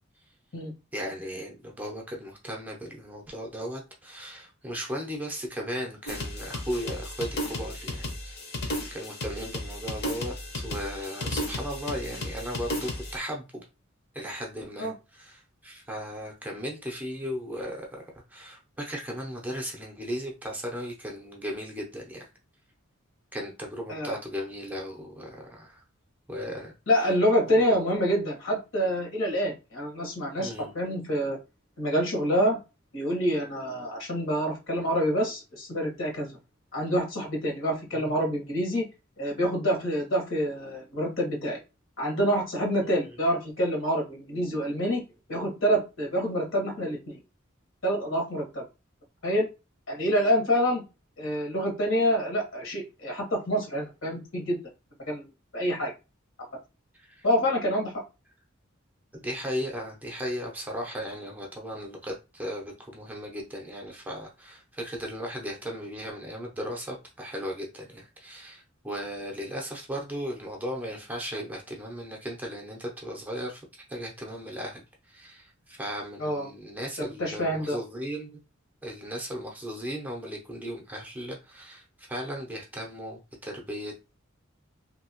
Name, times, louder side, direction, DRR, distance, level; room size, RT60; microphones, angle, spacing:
voice 1, 0.9-8.4 8.6-13.6 14.1-22.3 23.3-25.8 26.3-26.7 27.5-27.6 30.4-30.7 37.9-38.2 57.0-57.3 59.1-74.8 75.1-78.4 78.8-84.2, equal, 10° right, 0.6 m, -36 dB
sound 1, 6.1-13.2, left 1 dB, 50° left, 1.0 m, -34 dB
voice 2, 26.9-31.4 31.8-32.6 32.9-36.3 36.7-38.8 39.2-41.6 42.0-45.0 45.3-47.2 47.8-48.6 49.2-49.5 49.9-50.8 51.2-54.6 55.1-55.3 55.5-55.9 57.2-57.9 76.2-76.5 77.0-77.8, equal, 65° left, 1.4 m, -27 dB
2.8 x 2.7 x 2.9 m
head